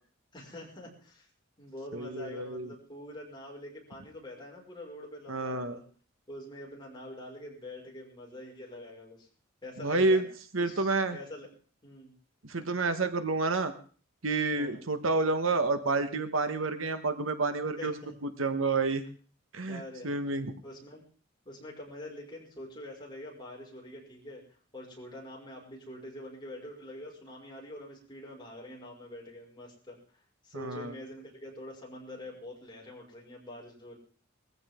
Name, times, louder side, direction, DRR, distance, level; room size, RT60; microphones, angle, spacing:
voice 1, 0.3-1.3 1.6-5.8 6.3-9.3 9.6-10.2 10.6-11.5 11.8-12.1 14.6-14.8 17.8-18.1 19.7-20.2 20.6-21.0 21.4-24.4 24.7-30.0 30.4-34.0, left 1 dB, 25° left, -2 dB, 5.6 m, -45 dB
voice 2, 1.9-2.7 5.3-5.8 9.8-10.2 10.5-11.2 12.4-13.7 14.2-17.9 18.4-19.0 19.5-20.6 30.5-30.9, right 3 dB, 85° right, 9 dB, 1.5 m, -29 dB
20.5 x 15.0 x 3.8 m, 0.42 s
head